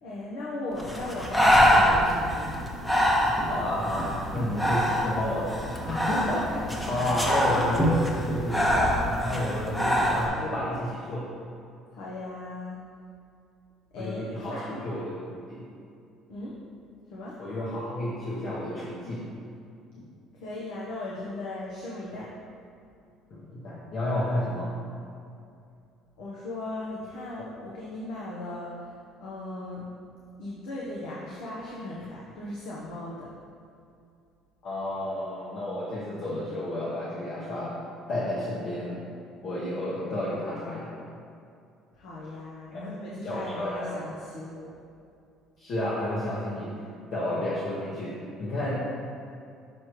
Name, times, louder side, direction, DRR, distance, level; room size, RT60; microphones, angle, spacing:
voice 1, 0.0-2.6 11.9-12.8 13.9-14.7 16.3-16.6 17.1-17.4 20.3-22.3 26.2-28.9 29.2-29.9 30.4-33.3 41.9-44.7, left 2 dB, 90° left, -6 dB, 0.9 m, -37 dB
Breathing, 0.8-10.3, equal, 10° left, 0.7 m, -25 dB
voice 2, 3.4-5.5 5.9-11.3 14.0-15.6 17.4-19.3 20.0-20.1 23.3-24.7 34.6-37.7 38.1-39.0 39.4-40.9 42.7-42.9 43.2-44.0 45.6-46.7 47.1-48.7, left 1 dB, 55° left, -7 dB, 1.0 m, -31 dB
6.1 x 5.0 x 3.1 m, 2.5 s
cardioid pair, 125°, 0 cm